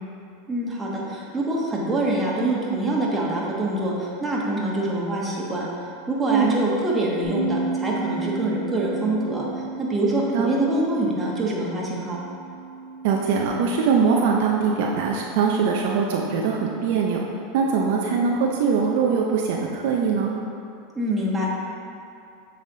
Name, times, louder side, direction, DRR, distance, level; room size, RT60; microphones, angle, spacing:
voice 1, 0.5-5.7 6.1-9.4 9.8-12.2 20.9-21.5, right 1 dB, 20° right, -4 dB, 1.3 m, -25 dB
Bass guitar, 7.2-13.5, right 3 dB, 85° right, 1.4 m, -33 dB
voice 2, 13.0-17.2 17.5-20.3, right 5 dB, 65° right, -1 dB, 0.5 m, -22 dB
7.5 x 3.3 x 3.8 m, 2.6 s
hypercardioid pair, 100°, 0 cm